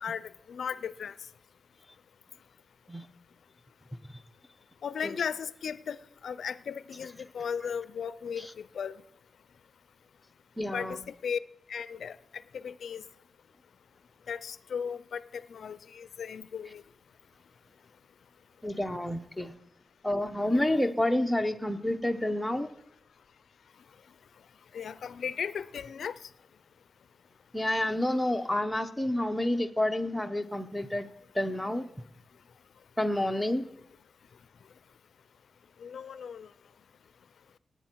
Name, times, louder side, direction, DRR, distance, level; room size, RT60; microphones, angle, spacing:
voice 1, 0.5-1.1 4.8-6.0 6.2-8.5 8.7-9.0 10.7-11.0 11.2-11.4 11.7-12.2 12.5-13.0 14.3-16.8 20.5-20.6 24.7-26.2 35.8-36.5, left 7 dB, 90° left, 0.4 m, -36 dB
voice 2, 10.6-11.0 18.6-19.5 20.0-22.7 27.5-31.1 31.3-31.8 33.0-33.7, left 1 dB, 5° left, 0.8 m, -29 dB
17.0 x 9.1 x 4.5 m
wide cardioid pair, 105°, 0 cm